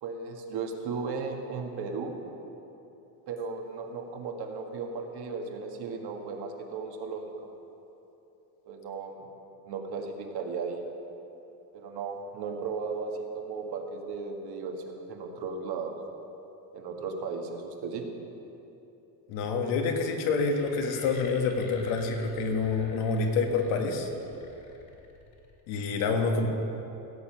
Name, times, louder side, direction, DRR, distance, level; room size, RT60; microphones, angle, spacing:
voice 1, 0.0-2.2 3.3-7.3 8.7-9.2 9.6-10.8 11.7-16.0 16.7-18.1, right 4 dB, 55° right, 2 dB, 1.6 m, -35 dB
voice 2, 19.3-24.1 25.7-26.5, left 4 dB, 75° left, 3 dB, 1.7 m, -27 dB
sound 1, 20.3-25.6, left 4 dB, 45° left, 2.7 m, -50 dB
16.5 x 7.4 x 5.8 m, 3.0 s
cardioid pair, 125°, 47 cm